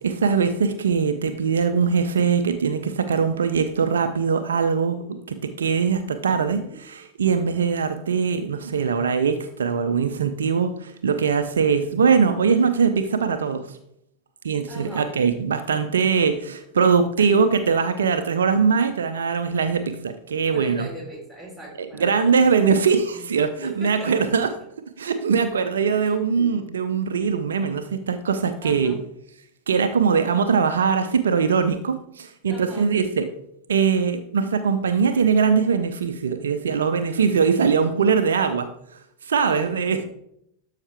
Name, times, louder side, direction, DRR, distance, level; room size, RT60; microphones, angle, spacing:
voice 1, 0.0-5.0 5.3-13.8 14.4-20.9 22.0-24.5 25.0-29.0 29.7-33.3 33.7-38.7 39.2-40.0, right 6 dB, 65° right, 9 dB, 0.6 m, -21 dB
voice 2, 6.3-6.8 14.7-15.1 17.2-17.4 20.5-22.4 22.8-23.2 23.5-24.2 26.0-26.5 28.6-29.0 32.4-32.9 37.1-37.2 39.4-40.1, right 1 dB, 5° left, -3 dB, 3.8 m, -39 dB
12.5 x 5.7 x 3.4 m, 0.73 s
figure-of-eight pair, 90°, 0 cm